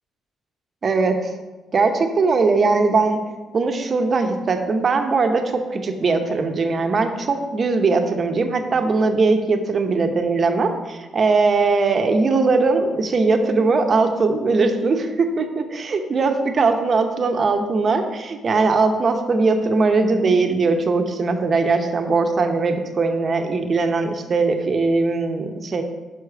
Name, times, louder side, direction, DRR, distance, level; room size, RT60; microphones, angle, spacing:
voice 1, 0.8-1.3 1.7-3.2 3.5-25.8, right 3 dB, 45° right, 5 dB, 0.8 m, -20 dB
6.0 x 4.9 x 4.8 m, 1.2 s
cardioid pair, 90°, 0 cm